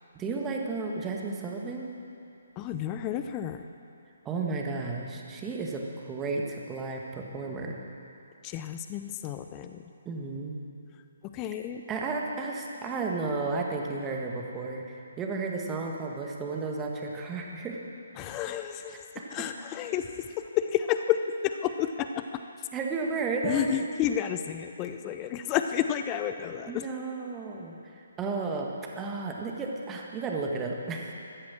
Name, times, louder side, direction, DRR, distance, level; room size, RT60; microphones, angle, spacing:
voice 1, 0.1-1.9 4.3-7.8 10.1-10.6 11.9-17.8 19.2-19.3 22.7-23.8 26.7-31.1, right 3 dB, 15° right, 0 dB, 1.8 m, -33 dB
voice 2, 2.6-3.6 8.4-9.8 11.2-11.8 18.2-19.1 19.3-22.7 23.4-26.9, left 10 dB, 20° left, 8 dB, 0.5 m, -31 dB
15.0 x 12.5 x 7.4 m, 2.6 s
figure-of-eight pair, 135°, 0 cm